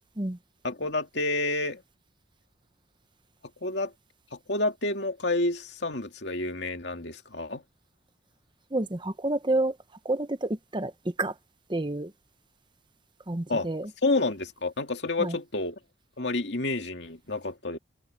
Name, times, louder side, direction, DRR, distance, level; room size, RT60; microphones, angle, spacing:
voice 1, 0.6-1.8 3.6-3.9 4.3-7.6 13.5-13.7 14.0-15.8 16.2-17.8, left 2 dB, 60° left, 2.4 m, -29 dB
voice 2, 8.7-9.8 10.0-11.3 11.7-12.1 13.3-13.9 15.2-15.4, right 2 dB, 25° right, 0.8 m, -29 dB
head